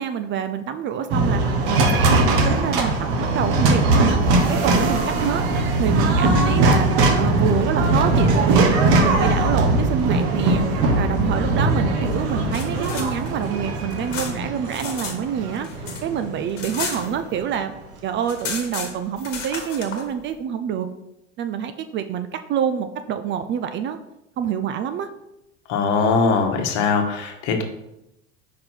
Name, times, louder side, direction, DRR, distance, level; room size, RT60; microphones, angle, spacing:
voice 1, 0.0-1.4 1.7-4.2 4.6-5.4 5.8-6.9 7.2-10.6 11.0-15.7 16.0-17.7 18.0-20.9 21.4-24.0 24.4-25.1, right 8 dB, 30° right, 9 dB, 0.4 m, -26 dB
sound 1, 1.1-17.3, right 2 dB, 65° right, 1.2 m, -20 dB
sound 2, 12.2-15.2 15.5-17.6 17.9-18.0 18.2-20.0, left 5 dB, 80° left, 1.3 m, -33 dB
voice 2, 25.7-27.6, left 4 dB, 60° left, 4 dB, 1.2 m, -21 dB
5.1 x 4.1 x 4.5 m, 0.88 s
hypercardioid pair, 85°, 37 cm